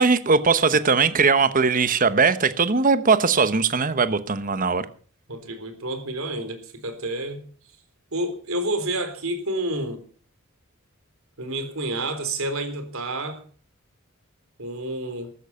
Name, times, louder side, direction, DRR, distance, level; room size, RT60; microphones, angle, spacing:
voice 1, 0.0-4.9, right 4 dB, 40° right, 13 dB, 1.0 m, -20 dB
voice 2, 5.3-7.5 8.1-10.0 11.4-13.4 14.6-15.3, right 1 dB, 85° right, 8 dB, 3.7 m, -29 dB
14.0 x 13.5 x 5.7 m, 0.42 s
head